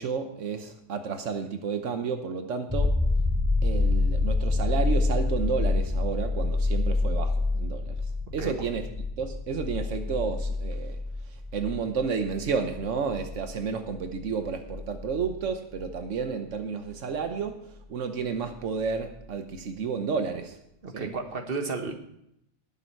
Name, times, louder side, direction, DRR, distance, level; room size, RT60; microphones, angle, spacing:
voice 1, 0.0-3.0 3.6-8.0 8.3-8.9 9.2-11.0 11.3-20.6 20.9-21.1, right 5 dB, 85° right, 7 dB, 1.3 m, -31 dB
sound 1, 2.7-16.2 18.9-19.0, left 3 dB, 5° right, 3.7 m, -28 dB
voice 2, 20.8-21.9, right 4 dB, 50° right, 4 dB, 1.6 m, -32 dB
19.0 x 7.1 x 4.5 m, 0.77 s
omnidirectional pair, 1.2 m